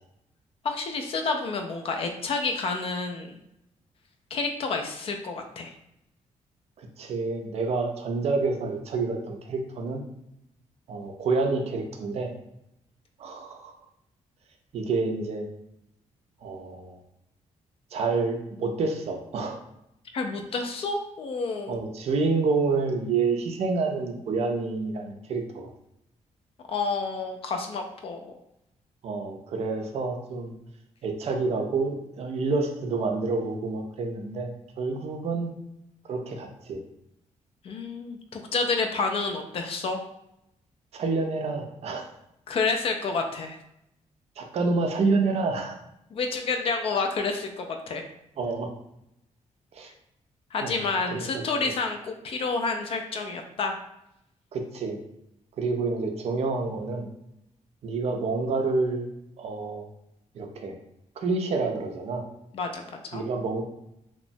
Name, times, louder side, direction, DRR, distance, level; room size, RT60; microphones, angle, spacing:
voice 1, 0.6-3.4 4.3-5.7 20.1-21.8 26.7-28.4 37.6-40.0 42.5-43.6 46.1-48.0 50.5-53.8 62.5-63.2, left 4 dB, 50° left, 4 dB, 0.3 m, -29 dB
voice 2, 6.8-10.0 10.9-12.3 13.2-13.7 14.7-15.5 16.4-17.0 17.9-19.6 21.7-25.7 29.0-30.6 31.0-35.5 36.1-36.8 40.9-42.1 44.4-45.8 48.4-48.7 49.7-49.9 50.6-50.8 51.1-51.4 54.5-55.0 55.6-57.1 57.8-59.1 59.4-59.9 60.3-60.7 61.2-62.2 63.1-63.6, right 3 dB, 55° right, 4 dB, 0.4 m, -28 dB
2.9 x 2.1 x 2.6 m, 0.81 s
wide cardioid pair, 175°, 13 cm